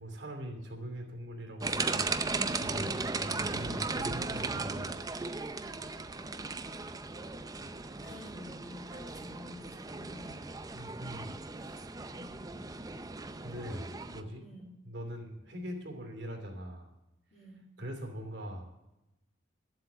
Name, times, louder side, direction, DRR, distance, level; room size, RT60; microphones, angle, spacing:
voice 1, 0.0-2.2 2.6-5.1 10.7-12.0 13.4-14.5 14.8-16.9 17.8-18.7, equal, 60° right, 3 dB, 2.8 m, -42 dB
sound 1, 1.6-14.2, right 3 dB, 20° right, 0.5 m, -36 dB
voice 2, 5.8-6.5 8.0-10.4 12.0-12.4 14.4-14.7 17.3-17.6, left 1 dB, 35° left, -6 dB, 2.2 m, -51 dB
12.0 x 7.8 x 6.7 m, 0.96 s
head